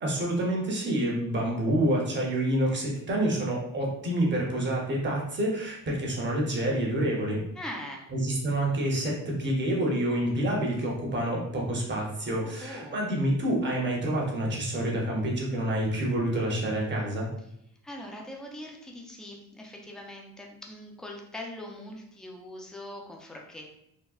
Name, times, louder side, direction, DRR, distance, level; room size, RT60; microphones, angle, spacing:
voice 1, 0.0-7.4 8.1-17.3, right 1 dB, 30° right, -2 dB, 0.7 m, -28 dB
voice 2, 7.6-8.1 12.4-13.0 17.8-23.7, left 1 dB, ahead, 0 dB, 0.3 m, -42 dB
3.5 x 2.1 x 2.3 m, 0.77 s
cardioid pair, 140°, 35 cm